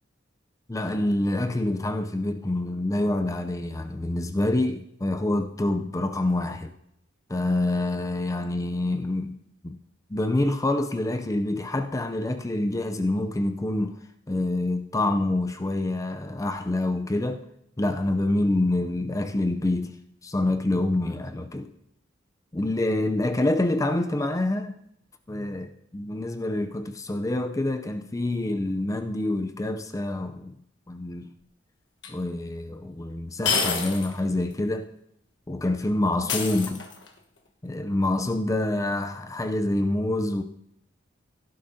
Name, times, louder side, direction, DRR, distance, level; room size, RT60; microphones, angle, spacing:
voice 1, 0.7-6.7 7.3-9.4 9.6-9.8 10.1-14.0 14.3-17.4 17.8-20.0 20.2-21.7 22.5-24.8 25.3-30.6 30.9-31.4 32.1-34.9 35.5-36.8 37.6-40.4, left 1 dB, 15° left, 0.5 m, -26 dB
sound 1, 32.0-32.1 33.4-34.2 34.5-34.6 36.3-37.2, left 5 dB, 65° left, 1.3 m, -27 dB
17.0 x 11.5 x 2.7 m
head